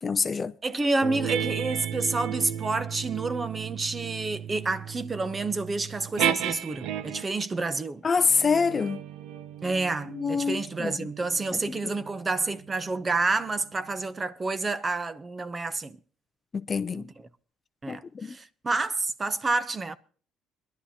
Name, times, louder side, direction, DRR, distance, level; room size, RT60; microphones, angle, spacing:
voice 1, 0.0-0.5 8.0-9.0 10.1-11.1 11.5-11.9 16.6-17.1 17.9-18.3, left 5 dB, 25° left, 0.5 m, -26 dB
voice 2, 0.6-8.0 9.6-16.0 16.9-17.1 17.8-20.0, right 3 dB, 20° right, 0.6 m, -29 dB
sound 1, 1.0-7.4 8.2-13.1, right 9 dB, 70° right, 0.8 m, -34 dB
23.0 x 11.5 x 2.8 m
cardioid pair, 135°, 0 cm